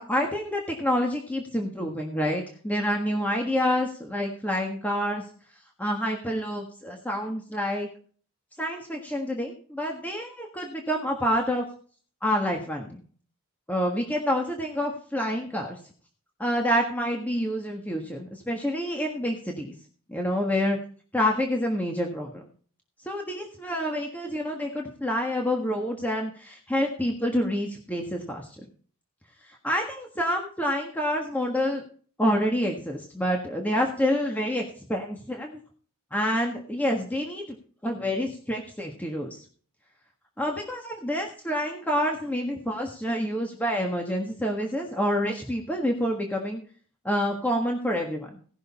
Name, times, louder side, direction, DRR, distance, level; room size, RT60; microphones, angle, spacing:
voice 1, 0.0-5.2 5.8-7.9 8.6-11.6 12.2-13.0 13.7-15.8 16.4-19.7 20.1-20.8 21.1-22.5 23.0-28.5 29.6-31.8 32.2-34.6 34.9-35.6 36.1-37.6 37.8-39.4 40.4-46.6 47.0-48.3, equal, 5° left, 1 dB, 1.5 m, -27 dB
17.5 x 6.4 x 4.2 m, 0.43 s
head